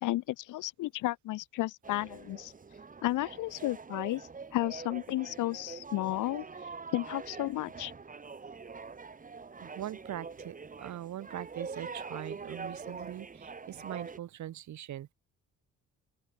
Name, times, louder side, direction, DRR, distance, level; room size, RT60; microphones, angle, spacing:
voice 1, 0.0-2.5 3.0-4.2 4.5-6.4 6.9-7.9, left 16 dB, 90° left, 1.5 m, -33 dB
sound 1, 1.8-14.2, right 4 dB, 25° right, 1.7 m, -44 dB
voice 2, 9.6-15.1, right 12 dB, 70° right, 2.1 m, -42 dB
open air
cardioid pair, 90°, 30 cm